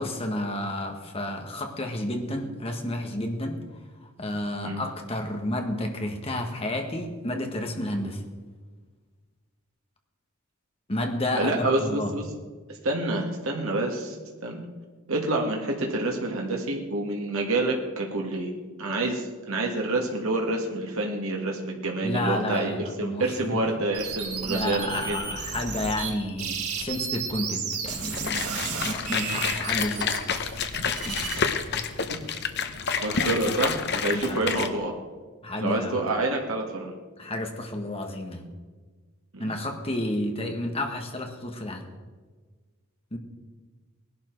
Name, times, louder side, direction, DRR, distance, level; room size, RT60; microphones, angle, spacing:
voice 1, 0.0-3.6 4.2-8.2 10.9-12.1 22.0-23.6 24.4-30.6 31.0-31.8 33.2-33.4 34.1-34.5 35.4-36.0 37.2-38.5 39.4-41.9 43.1-43.2, left 1 dB, 25° left, 3 dB, 1.6 m, -31 dB
voice 2, 11.4-12.3 12.8-14.2 14.4-14.7 15.1-18.5 18.8-25.2 29.1-29.4 33.0-34.9 35.6-36.9 39.3-39.5, right 2 dB, 70° right, 0 dB, 1.9 m, -28 dB
sound 1, 23.9-26.1 26.4-31.4, right 6 dB, 90° right, 2.8 m, -33 dB
sound 2, 28.1-34.7, left 6 dB, 50° left, 0.9 m, -29 dB
19.0 x 11.5 x 4.7 m, 1.4 s
head